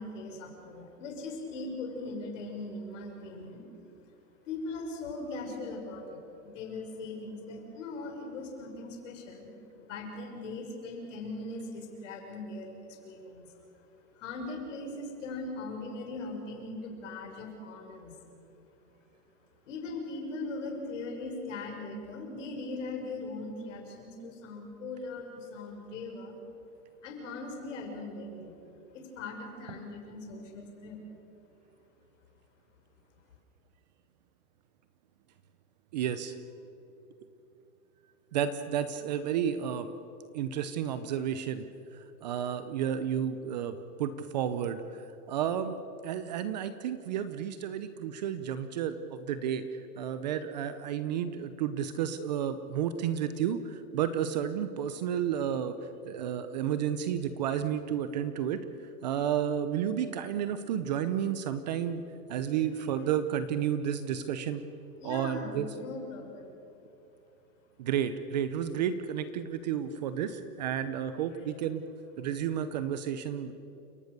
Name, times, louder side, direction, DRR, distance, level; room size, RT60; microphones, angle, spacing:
voice 1, 0.0-3.6 4.4-6.2 6.4-13.5 14.1-18.2 19.7-26.4 27.0-28.5 28.9-31.0 65.0-66.5, left 2 dB, 55° left, 2 dB, 6.1 m, -40 dB
voice 2, 35.9-36.4 38.3-39.9 40.3-41.6 41.9-45.8 46.0-55.8 56.1-58.6 59.0-62.0 62.3-64.6 65.0-65.7 67.8-71.8 72.2-73.5, right 9 dB, 30° right, 11 dB, 0.7 m, -31 dB
29.5 x 17.5 x 6.7 m, 3.0 s
hypercardioid pair, 165°, 45 cm